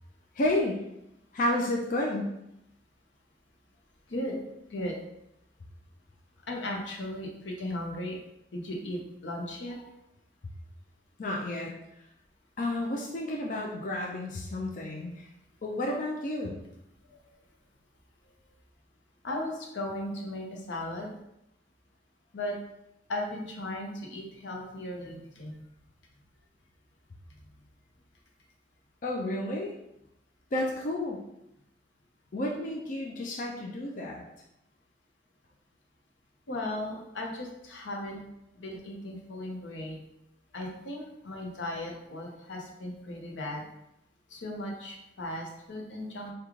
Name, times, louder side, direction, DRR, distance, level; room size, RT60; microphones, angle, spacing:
voice 1, 0.3-0.8 1.3-2.3 11.2-11.7 12.6-15.3 15.6-16.5 29.0-29.7 30.5-31.2 32.3-34.2, left 1 dB, 45° left, -2 dB, 0.4 m, -31 dB
voice 2, 6.5-8.2 8.5-9.8 17.1-17.2 19.2-21.1 22.3-22.6 23.1-25.5 36.5-38.2 38.6-40.0 40.5-43.6 44.3-46.3, left 1 dB, 85° left, 0 dB, 0.7 m, -36 dB
3.6 x 2.3 x 3.0 m, 0.83 s
head